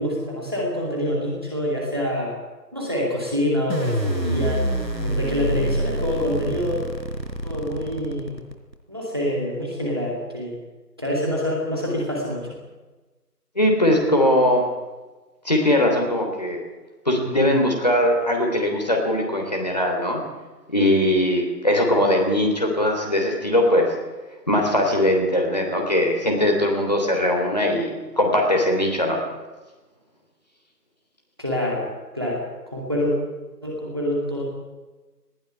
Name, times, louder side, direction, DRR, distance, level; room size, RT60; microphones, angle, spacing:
voice 1, 0.0-2.3 2.7-4.7 5.0-6.8 7.4-8.3 8.9-10.6 11.0-12.6 31.4-31.9 32.1-33.1 33.6-34.4, left 1 dB, 15° right, -3 dB, 2.4 m, -26 dB
sound 1, 3.7-8.7, right 1 dB, 90° right, 4.5 m, -26 dB
voice 2, 13.5-14.7 15.4-16.6 17.0-20.2 20.7-23.9 24.5-29.2, left 1 dB, 25° left, 1 dB, 3.2 m, -20 dB
20.0 x 17.5 x 9.9 m, 1.2 s
figure-of-eight pair, 170°, 49 cm